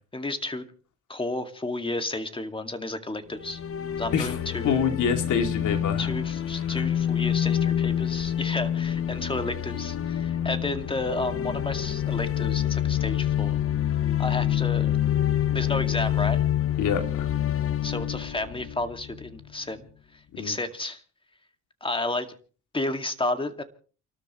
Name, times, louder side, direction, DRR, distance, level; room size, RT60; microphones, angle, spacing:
voice 1, 0.1-0.6 1.1-3.6 4.0-4.8 6.0-13.6 14.2-14.9 15.5-16.4 17.8-19.9 20.4-21.0 21.8-22.3 22.7-23.6, left 2 dB, 15° left, 7 dB, 2.2 m, -32 dB
sound 1, 3.3-19.4, left 10 dB, 50° left, 0.9 m, -27 dB
voice 2, 4.6-6.1 6.6-6.9 16.8-17.3 20.3-20.5, left 7 dB, 75° left, 5 dB, 2.8 m, -26 dB
29.5 x 13.0 x 3.1 m, 0.39 s
cardioid pair, 90°, 30 cm